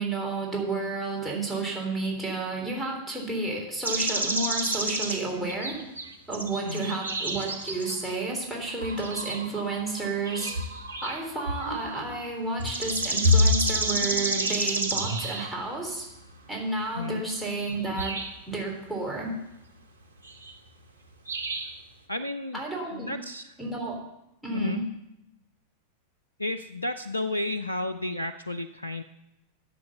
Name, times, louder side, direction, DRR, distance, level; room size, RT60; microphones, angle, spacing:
voice 1, 0.0-5.8 6.3-10.5 11.0-16.1 16.5-18.2 18.5-19.4 22.5-23.1 23.6-24.0 24.4-24.9, right 3 dB, ahead, -3 dB, 3.4 m, -31 dB
sound 1, 3.8-5.2 5.5-8.1 8.7-12.3 12.6-15.6 17.7-17.8 18.0-18.3 20.2-20.5 21.3-21.8, equal, 80° right, 1.3 m, -28 dB
voice 2, 6.6-7.0 16.9-17.2 22.1-22.6 22.9-23.4 24.5-24.8 26.4-29.0, left 2 dB, 85° left, 11 dB, 0.4 m, -32 dB
11.5 x 7.6 x 6.9 m, 0.87 s
figure-of-eight pair, 90°, 0 cm